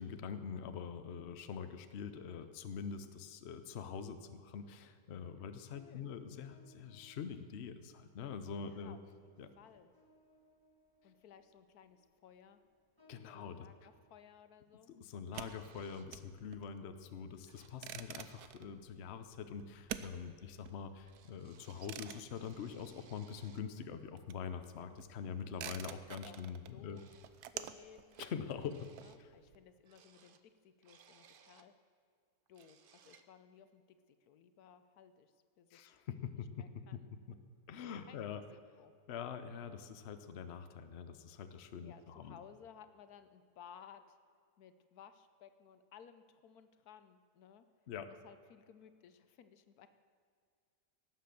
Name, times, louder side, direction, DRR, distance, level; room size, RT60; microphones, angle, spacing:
voice 1, 0.0-9.0 9.4-9.5 13.1-13.7 14.9-27.0 28.2-28.9 29.2-29.3 35.7-36.7 36.9-37.0 37.3-37.4 37.7-38.4 39.1-42.4 47.9-48.1, left 7 dB, 50° left, 9 dB, 0.9 m, -44 dB
voice 2, 5.5-6.1 8.5-9.3 9.6-9.9 11.0-12.6 13.3-14.9 17.6-18.1 24.8-26.4 26.7-27.0 27.5-28.2 28.5-31.7 32.5-36.0 36.6-37.1 37.8-38.2 38.8-38.9 41.8-44.2 44.6-47.7 48.2-49.9, left 8 dB, 75° left, 11 dB, 1.2 m, -59 dB
sound 1, 6.4-14.1, right 1 dB, 15° left, 1.8 m, -69 dB
sound 2, 15.2-23.5 23.8-29.6, right 10 dB, 80° right, 1.2 m, -49 dB
sound 3, 15.4-16.1 17.1-17.2 17.5-17.8 18.0-18.5 21.0-21.9 22.3-23.7 25.1-25.2 26.2-26.5 26.9-27.4 27.7-28.4 28.7-29.2 29.8-31.7 32.2-32.3 32.5-33.3, right 7 dB, 55° right, 0.6 m, -64 dB
17.5 x 7.7 x 6.9 m, 2.1 s
omnidirectional pair, 1.7 m